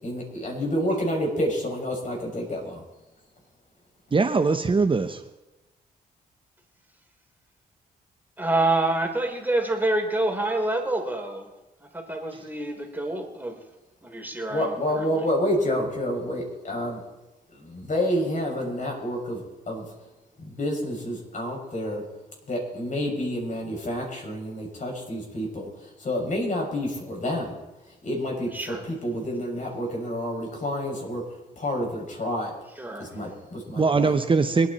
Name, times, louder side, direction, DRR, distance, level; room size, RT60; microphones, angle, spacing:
voice 1, 0.0-2.8 14.5-17.0 17.5-19.4 19.7-19.9 20.4-22.0 22.5-27.6 28.0-31.2 31.6-32.5 33.0-34.1, equal, 50° left, 0 dB, 6.5 m, -29 dB
voice 2, 4.1-5.2 33.8-34.7, right 4 dB, 30° right, 8 dB, 1.0 m, -21 dB
voice 3, 8.4-11.5 11.8-13.6 14.0-15.2 28.5-28.9 32.8-33.1, right 2 dB, 10° right, 2 dB, 3.7 m, -27 dB
25.0 x 9.7 x 4.3 m, 1.0 s
cardioid pair, 65°, 17 cm